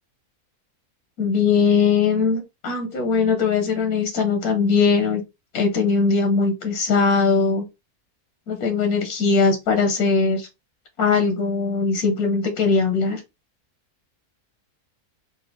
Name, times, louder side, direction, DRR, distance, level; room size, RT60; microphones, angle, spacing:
voice 1, 1.2-5.2 5.5-7.6 8.5-10.5 11.0-13.2, left 5 dB, 85° left, 4 dB, 1.5 m, -20 dB
4.2 x 2.2 x 4.6 m, 0.23 s
omnidirectional pair, 1.6 m